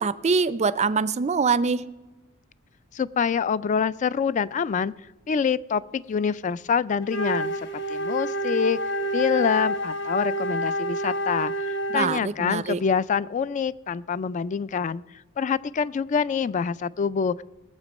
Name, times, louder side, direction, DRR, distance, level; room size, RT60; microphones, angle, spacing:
voice 1, 0.0-1.8 11.9-12.8, right 5 dB, 35° right, 16 dB, 0.4 m, -24 dB
voice 2, 2.9-4.9 5.3-7.5 7.9-8.8 9.1-15.0 15.4-17.4, left 6 dB, 35° left, 18 dB, 0.3 m, -26 dB
Wind instrument woodwind instrument, 7.0-12.3, right 1 dB, 60° left, 1.1 m, -28 dB
19.5 x 7.4 x 5.3 m, 1.2 s
head